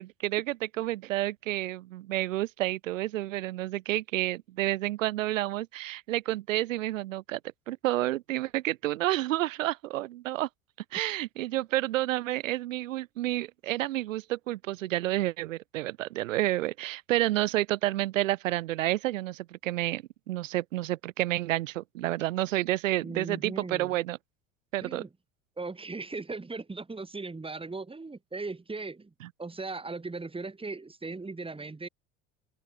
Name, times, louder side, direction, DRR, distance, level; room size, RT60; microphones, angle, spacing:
voice 1, 0.0-7.4 7.7-10.5 10.9-24.2 24.7-25.0, right 16 dB, 75° right, 4.9 m, -30 dB
voice 2, 23.0-24.0 24.8-25.1 25.6-29.1 29.4-31.9, right 3 dB, 15° right, 3.7 m, -38 dB
open air
hypercardioid pair, 70°, 39 cm